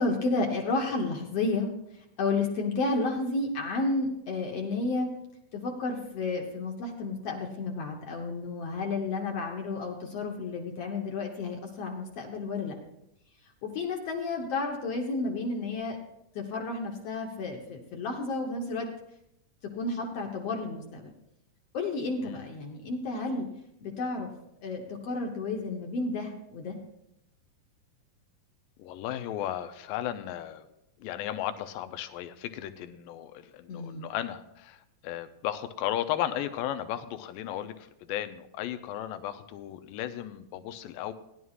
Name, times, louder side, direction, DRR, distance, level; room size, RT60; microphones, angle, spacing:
voice 1, 0.0-5.1 5.5-12.8 13.6-16.0 16.3-18.9 19.7-21.1 21.7-23.5 23.8-24.3 24.6-26.8 33.7-34.1, left 3 dB, 65° left, 1 dB, 1.6 m, -31 dB
voice 2, 28.8-30.7 31.0-41.1, left 12 dB, 85° left, 10 dB, 2.3 m, -35 dB
17.5 x 11.0 x 2.4 m, 0.82 s
omnidirectional pair, 3.9 m